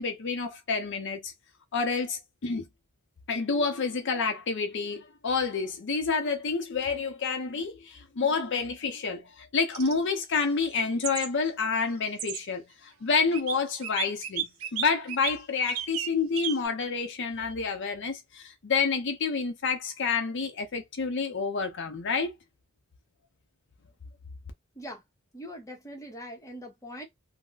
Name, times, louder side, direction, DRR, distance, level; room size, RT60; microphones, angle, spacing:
voice 1, 0.0-1.3 1.7-2.6 3.3-14.5 14.7-22.3, left 4 dB, 60° left, 0.6 m, -29 dB
sound 1, 9.7-9.9 11.0-11.3 12.2-12.4 13.3-13.5 13.8-15.3 15.7-16.1 16.4-16.7, right 9 dB, 75° right, 0.6 m, -32 dB
voice 2, 25.3-27.0, equal, 15° left, 0.8 m, -42 dB
2.4 x 2.1 x 3.7 m
head